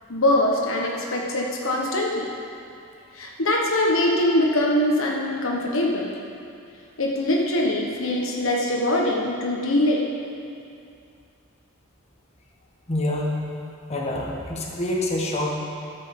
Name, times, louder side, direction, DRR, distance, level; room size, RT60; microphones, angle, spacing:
voice 1, 0.1-2.3 3.1-6.1 7.0-10.0, left 1 dB, 65° left, -1 dB, 1.3 m, -23 dB
voice 2, 12.9-13.4 13.9-15.6, left 1 dB, 30° left, -2 dB, 1.5 m, -26 dB
12.0 x 6.7 x 7.2 m, 2.5 s
head